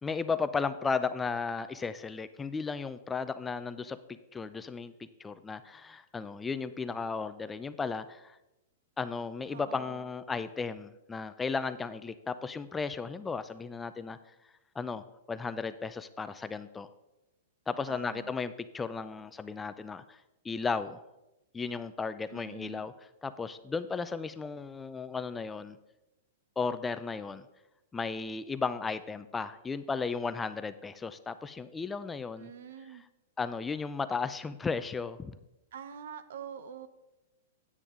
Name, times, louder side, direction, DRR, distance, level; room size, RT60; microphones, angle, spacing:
voice 1, 0.0-4.9 5.2-8.4 9.0-14.2 14.8-16.9 17.7-21.0 21.5-22.9 23.2-25.8 26.6-27.4 27.9-32.5 33.4-35.4, left 4 dB, 15° left, 12 dB, 0.4 m, -35 dB
voice 2, 9.5-10.1 17.9-18.4 22.3-22.9 32.4-33.0 35.7-36.9, right 8 dB, 70° right, 12 dB, 0.8 m, -45 dB
9.7 x 9.2 x 3.7 m, 0.97 s
hypercardioid pair, 130°, 0 cm